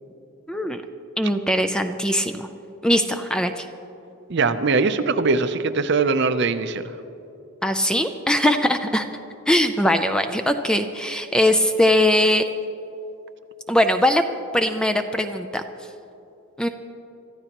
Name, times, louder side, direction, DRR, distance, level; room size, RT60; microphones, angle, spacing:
voice 1, 0.5-0.8 1.2-2.5 2.8-3.7 7.6-9.0 9.5-12.4 13.7-14.2 14.5-15.7 16.6-16.7, left 1 dB, 5° left, 7 dB, 0.4 m, -20 dB
voice 2, 4.3-6.8, right 4 dB, 50° right, 10 dB, 0.6 m, -21 dB
24.5 x 13.5 x 3.0 m, 3.0 s
head